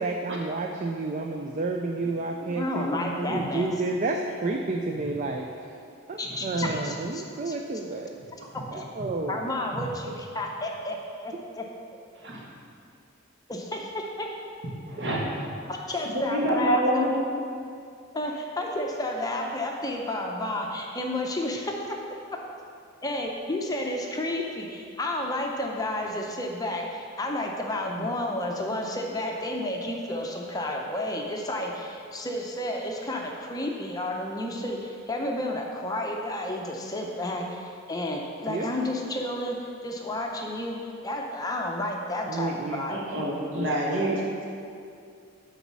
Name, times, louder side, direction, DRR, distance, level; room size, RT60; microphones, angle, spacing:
voice 1, 0.0-5.7 6.1-8.1 8.7-9.4 11.3-11.4 15.0-15.1 27.9-28.2 38.5-38.7 42.3-42.9 43.5-43.7, right 3 dB, 35° right, 2 dB, 0.4 m, -30 dB
voice 2, 2.5-3.7 6.2-7.5 8.7-8.8 9.3-11.6 13.5-14.3 15.7-17.1 18.1-22.0 23.0-43.0, left 1 dB, 20° left, 0 dB, 0.6 m, -31 dB
voice 3, 14.9-15.2 16.1-17.1 42.9-44.4, right 1 dB, 60° right, -4 dB, 1.7 m, -27 dB
9.3 x 4.1 x 6.1 m, 2.4 s
head